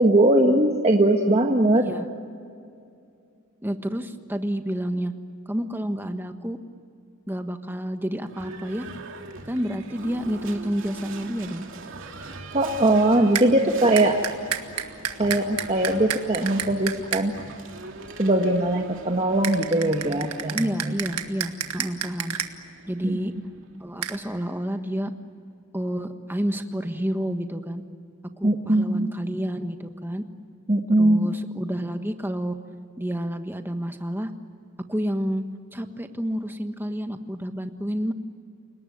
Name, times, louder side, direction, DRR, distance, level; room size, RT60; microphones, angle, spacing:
voice 1, 0.0-1.9 12.5-14.2 15.2-17.4 18.2-20.9 23.0-23.2 28.4-29.1 30.7-31.4, right 1 dB, 30° right, 1 dB, 1.6 m, -20 dB
voice 2, 1.7-2.1 3.6-5.1 5.5-6.6 7.3-8.9 9.5-11.6 20.5-22.4 22.9-23.3 23.8-25.1 25.7-27.8 28.4-30.2 31.0-32.5 33.0-34.3 34.9-35.4 35.7-38.1, equal, 10° right, 7 dB, 1.4 m, -29 dB
Livestock farm animals working animals / Bell, 8.2-24.1, right 3 dB, 60° right, 2.8 m, -42 dB
sound 1, 13.3-13.5 14.0-17.2 19.4-22.5 24.0-24.2, right 9 dB, 85° right, 1.8 m, -29 dB
29.5 x 19.0 x 9.6 m, 2.4 s
head